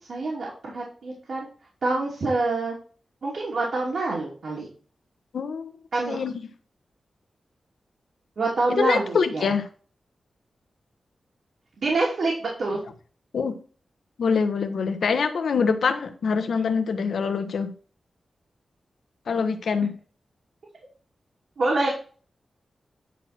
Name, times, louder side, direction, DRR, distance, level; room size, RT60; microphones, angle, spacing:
voice 1, 0.1-1.5 1.8-2.8 3.2-4.7 5.9-6.2 8.4-9.5 11.8-12.3 12.6-12.8 21.6-21.9, right 2 dB, 65° right, -4 dB, 2.9 m, -26 dB
voice 2, 5.3-5.7 6.1-6.3 8.8-9.7 13.3-13.6 14.2-17.7 19.3-19.9, left 5 dB, 80° left, 8 dB, 1.2 m, -24 dB
9.9 x 4.4 x 4.4 m, 0.40 s
wide cardioid pair, 140°, 0 cm